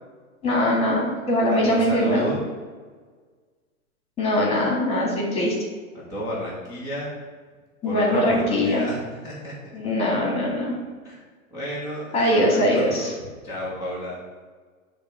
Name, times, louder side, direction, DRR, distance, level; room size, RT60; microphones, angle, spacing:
voice 1, 0.4-2.3 4.2-5.5 7.8-8.8 9.7-10.7 12.1-13.1, left 1 dB, 15° left, -3 dB, 2.3 m, -21 dB
voice 2, 1.5-2.4 6.1-7.1 7.8-9.5 11.0-11.2 11.5-13.2 13.4-14.2, equal, 10° right, -9 dB, 1.5 m, -31 dB
10.0 x 3.6 x 5.9 m, 1.5 s
hypercardioid pair, 155°, 42 cm